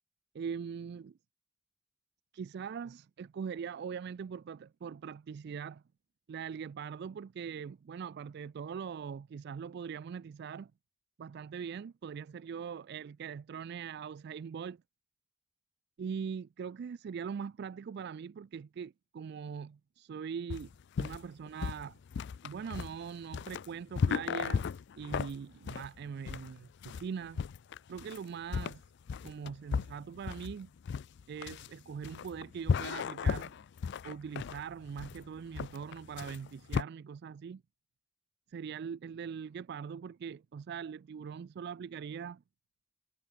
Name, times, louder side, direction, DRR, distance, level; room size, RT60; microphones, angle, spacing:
voice 1, 0.3-1.2 2.3-5.8 6.3-10.7 11.2-14.8 16.0-20.7 21.0-22.0 22.4-27.4 27.9-28.8 29.2-30.7 31.3-33.5 34.0-37.6 38.5-42.4, right 6 dB, 55° right, 0.3 m, -41 dB
sound 1, 20.5-36.8, left 6 dB, 60° left, 0.4 m, -35 dB
head